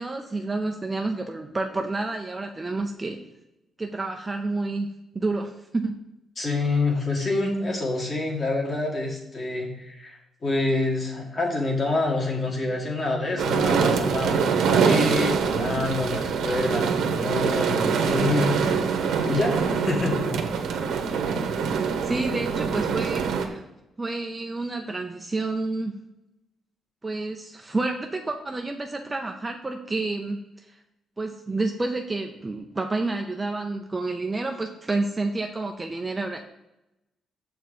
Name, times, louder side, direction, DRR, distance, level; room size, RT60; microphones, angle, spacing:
voice 1, 0.0-3.2 3.8-4.9 5.1-6.0 21.3-23.6 24.0-26.0 27.0-30.7 31.2-36.4, right 2 dB, 15° right, 3 dB, 0.5 m, -29 dB
voice 2, 6.4-18.8 19.3-20.2, left 2 dB, 30° left, 0 dB, 1.9 m, -27 dB
sound 1, 13.4-23.5, right 6 dB, 70° right, 1.0 m, -24 dB
7.4 x 4.6 x 6.9 m, 0.91 s
cardioid pair, 175°, 0 cm